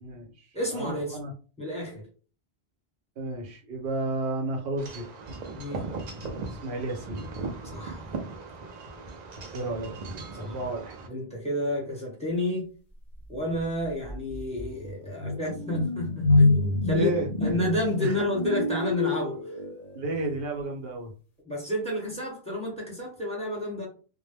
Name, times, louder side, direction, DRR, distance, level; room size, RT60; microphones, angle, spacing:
voice 1, 0.0-1.3 3.2-5.1 6.5-7.3 9.5-9.9 10.4-11.0 16.9-17.3 18.0-18.2 19.9-21.1, right 2 dB, 70° right, 1 dB, 1.0 m, -32 dB
voice 2, 0.5-1.2 1.6-2.0 5.5-5.9 7.6-8.0 10.3-10.5 11.1-12.7 13.3-17.1 17.4-19.4 21.5-23.9, left 1 dB, 5° left, -2 dB, 0.9 m, -30 dB
Wind chime / Wind, 4.8-11.1, right 3 dB, 55° right, 0.5 m, -38 dB
sound 1, 13.6-13.7 14.0-20.2, left 2 dB, 50° left, 0.6 m, -26 dB
2.1 x 2.1 x 3.2 m, 0.37 s
omnidirectional pair, 1.1 m